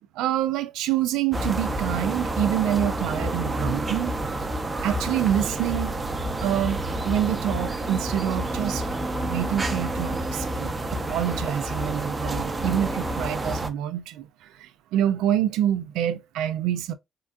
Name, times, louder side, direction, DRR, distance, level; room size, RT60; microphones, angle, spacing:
voice 1, 0.2-4.1 4.8-6.0 6.4-8.8 9.2-14.3 14.6-16.9, right 11 dB, 85° right, 0.3 m, -26 dB
sound 1, 1.3-13.7, right 1 dB, 25° right, 0.6 m, -29 dB
3.6 x 2.3 x 2.4 m
supercardioid pair, 75°, 0 cm